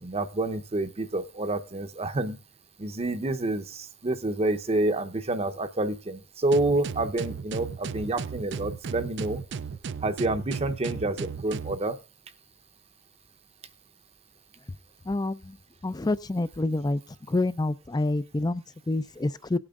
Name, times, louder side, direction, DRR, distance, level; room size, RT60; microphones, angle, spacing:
voice 1, 0.0-2.4 2.8-9.4 10.0-12.0, right 2 dB, 30° right, 0.8 m, -28 dB
sound 1, 6.5-11.8, right 6 dB, 60° right, 0.4 m, -35 dB
voice 2, 15.1-15.6 15.8-17.0 17.3-19.6, left 2 dB, 20° left, 0.4 m, -27 dB
18.0 x 8.8 x 2.4 m
head